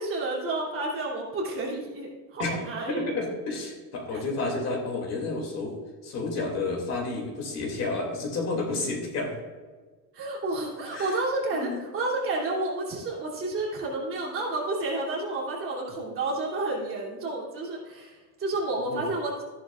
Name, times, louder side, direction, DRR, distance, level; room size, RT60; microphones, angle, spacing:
voice 1, 0.0-3.0 4.1-4.2 10.1-19.4, right 2 dB, 35° right, -4 dB, 2.8 m, -30 dB
voice 2, 2.9-5.7 6.0-9.3 10.9-11.2 11.5-11.8 18.9-19.0, left 3 dB, 40° left, 0 dB, 2.5 m, -30 dB
13.5 x 11.5 x 2.4 m, 1.4 s
cardioid pair, 175°, 38 cm